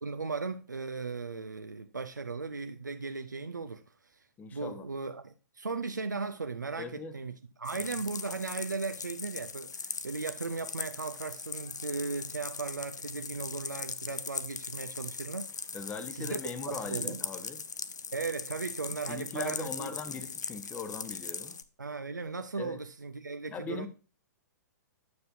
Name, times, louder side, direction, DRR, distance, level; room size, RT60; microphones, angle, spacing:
voice 1, 0.0-4.2 4.5-15.5 16.1-16.4 16.7-17.2 18.1-20.0 21.8-23.9, right 4 dB, 85° right, 0.5 m, -37 dB
voice 2, 4.4-4.9 6.8-7.1 7.7-7.9 15.7-17.6 19.1-21.6 22.6-22.8 23.5-23.9, left 5 dB, 15° left, 0.9 m, -40 dB
sound 1, 7.7-21.6, left 5 dB, 75° left, 0.6 m, -40 dB
9.6 x 6.6 x 2.6 m
figure-of-eight pair, 110°, 10 cm